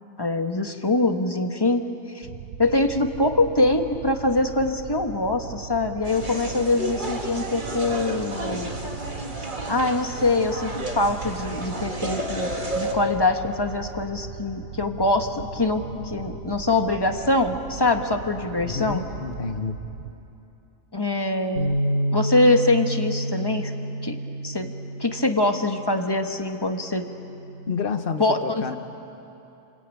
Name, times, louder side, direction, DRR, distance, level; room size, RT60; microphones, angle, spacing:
voice 1, 0.2-1.8 2.1-2.3 2.6-8.7 9.7-19.0 20.9-21.7 22.1-23.7 24.0-24.2 24.4-24.7 25.0-27.1 28.2-28.8, left 2 dB, 20° left, 5 dB, 1.4 m, -23 dB
sound 1, 2.2-20.1, right 7 dB, 80° right, 1.2 m, -38 dB
sound 2, 6.1-12.9, right 1 dB, 35° right, 2.2 m, -32 dB
voice 2, 18.6-19.8 27.7-28.8, left 5 dB, 45° left, 8 dB, 1.3 m, -29 dB
Bass guitar, 21.6-27.8, right 1 dB, 65° left, 4.3 m, -29 dB
30.0 x 22.0 x 9.2 m, 2.9 s
omnidirectional pair, 1.4 m